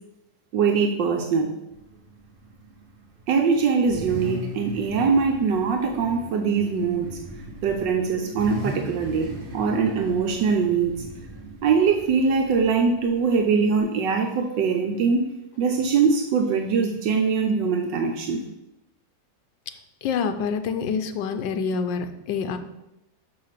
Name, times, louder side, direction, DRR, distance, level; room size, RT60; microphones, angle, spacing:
voice 1, 0.5-1.5 3.3-7.1 7.6-10.9 11.6-15.3 15.6-18.5, right 5 dB, 80° right, 4 dB, 1.4 m, -22 dB
Car / Idling / Accelerating revving vroom, 1.7-13.8, right 1 dB, 30° right, 1.6 m, -38 dB
voice 2, 20.0-22.6, left 5 dB, 80° left, 8 dB, 1.4 m, -27 dB
5.9 x 5.8 x 6.5 m, 0.91 s
omnidirectional pair, 2.0 m